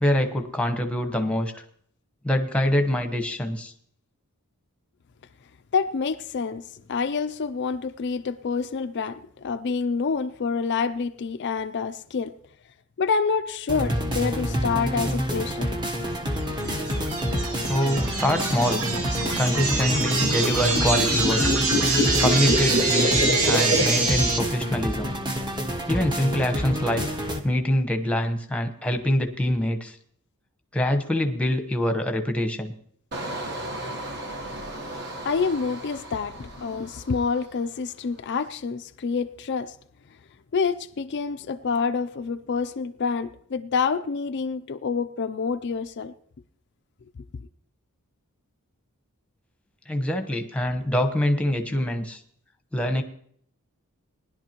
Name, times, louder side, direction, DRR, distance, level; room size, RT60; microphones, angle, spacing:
voice 1, 0.0-1.6 2.2-3.7 17.7-18.9 19.4-21.4 22.2-25.1 25.9-27.0 27.4-30.0 30.7-32.7 49.9-52.2 52.7-53.0, left 1 dB, 5° left, 1.0 m, -25 dB
voice 2, 5.7-6.6 6.9-12.3 13.0-15.7 16.5-16.6 35.2-39.7 40.5-46.1, left 5 dB, 50° left, 0.4 m, -27 dB
sound 1, 13.7-27.4, equal, 20° right, 1.1 m, -28 dB
sound 2, 16.7-24.4, right 2 dB, 85° right, 2.1 m, -24 dB
Engine, 33.1-37.8 38.1-38.5, right 1 dB, 50° right, 1.3 m, -36 dB
19.5 x 11.0 x 3.0 m
head